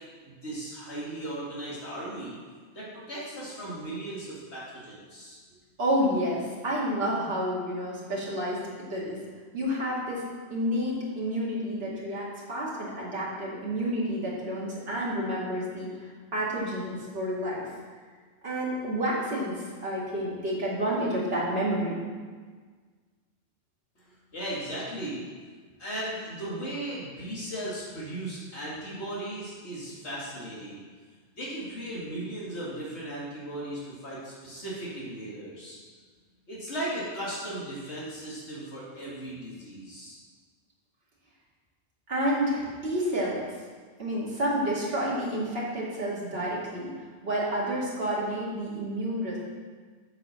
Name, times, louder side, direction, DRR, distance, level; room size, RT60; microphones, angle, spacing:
voice 1, 0.2-2.3 2.7-5.4 24.0-24.1 24.3-25.2 25.8-30.8 31.4-35.8 36.5-40.2, right 1 dB, 70° left, -7 dB, 2.5 m, -37 dB
voice 2, 5.8-8.6 8.9-9.2 9.5-17.7 18.4-22.0 42.1-43.4 44.0-46.9 47.2-49.4, equal, 55° right, -6 dB, 2.5 m, -29 dB
8.4 x 6.7 x 6.3 m, 1.5 s
omnidirectional pair, 1.2 m